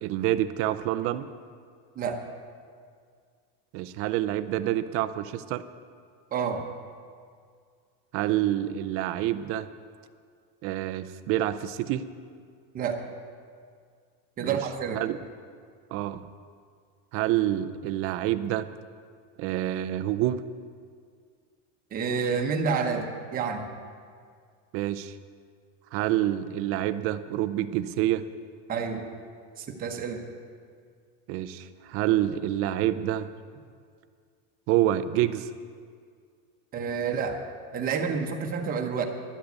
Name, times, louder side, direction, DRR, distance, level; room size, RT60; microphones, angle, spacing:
voice 1, 0.0-1.3 3.7-5.6 8.1-9.7 10.6-12.0 14.4-14.6 14.9-15.2 15.9-16.2 17.1-18.7 19.4-20.4 24.7-25.1 25.9-28.3 31.3-33.3 34.7-35.5, right 13 dB, 40° right, 12 dB, 0.5 m, -27 dB
voice 2, 6.3-6.6 12.7-13.0 14.4-15.0 21.9-23.7 28.7-29.0 29.6-30.2 36.7-37.4 37.7-39.1, right 5 dB, 25° right, 3 dB, 1.1 m, -29 dB
12.0 x 7.8 x 8.1 m, 2.1 s
cardioid pair, 170°, 36 cm